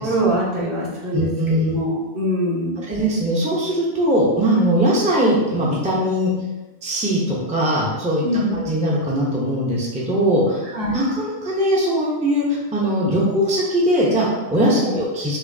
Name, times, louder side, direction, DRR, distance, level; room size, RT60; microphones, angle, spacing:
voice 1, 0.0-1.3 1.6-2.8 8.2-8.6 10.7-10.9 14.7-14.9, equal, 50° right, -7 dB, 1.5 m, -23 dB
voice 2, 1.1-1.7 2.8-6.3 6.8-8.2 8.5-10.6 10.9-15.4, equal, 5° right, -5 dB, 0.7 m, -20 dB
6.1 x 2.8 x 2.7 m, 1.1 s
omnidirectional pair, 1.2 m